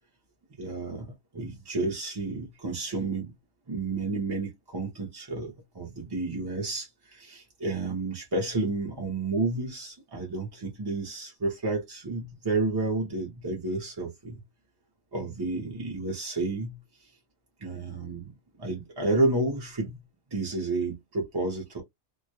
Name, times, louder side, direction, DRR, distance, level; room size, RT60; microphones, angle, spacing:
voice 1, 0.6-3.3 3.7-14.4 15.1-17.1 17.6-18.3 18.6-20.0 20.3-21.8, right 3 dB, 30° right, 0.5 m, -31 dB
2.3 x 2.0 x 2.7 m
omnidirectional pair, 1.2 m